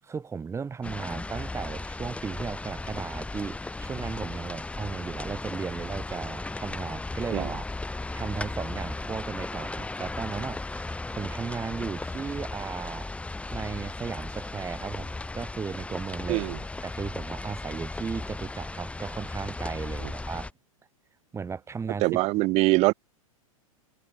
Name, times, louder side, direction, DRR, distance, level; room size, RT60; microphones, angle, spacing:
voice 1, 0.0-7.7 8.1-13.1 13.5-16.4 16.8-20.5 21.3-22.2, right 5 dB, 15° right, 6.8 m, -35 dB
sound 1, 0.8-20.5, left 2 dB, 5° left, 6.6 m, -36 dB
voice 2, 22.0-22.9, right 22 dB, 35° right, 1.1 m, -23 dB
figure-of-eight pair, 100°, 18 cm